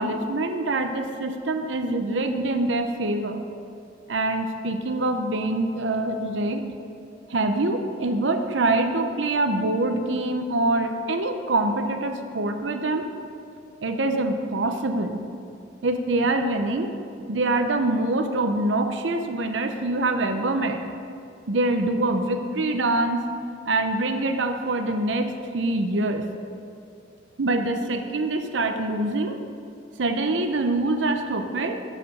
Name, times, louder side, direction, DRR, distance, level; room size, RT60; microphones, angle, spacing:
voice 1, 0.0-3.4 4.1-6.6 7.3-13.1 13.8-15.2 15.8-16.9 17.2-20.8 21.5-23.2 23.7-26.3 27.4-29.4 30.0-31.8, right 2 dB, 85° right, 6 dB, 0.7 m, -25 dB
12.5 x 5.0 x 6.4 m, 2.5 s
head